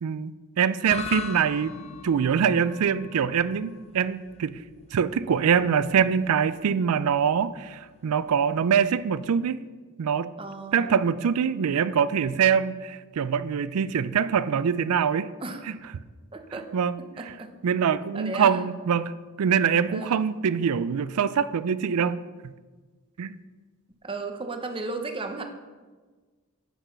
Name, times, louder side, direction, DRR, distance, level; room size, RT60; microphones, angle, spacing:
voice 1, 0.0-1.7 2.0-4.5 4.9-9.6 10.0-10.3 10.7-15.3 16.7-17.0 17.6-19.1 19.4-22.2 22.4-22.5 23.2-23.4, right 7 dB, 85° right, 0.4 m, -24 dB
sound 1, 0.8-9.3, left 5 dB, 30° left, 0.5 m, -41 dB
voice 2, 10.4-10.9 15.4-15.7 16.3-16.7 17.2-17.5 18.1-18.7 19.9-20.3 24.0-25.4, right 3 dB, 25° right, 0.8 m, -34 dB
8.3 x 6.1 x 5.6 m
head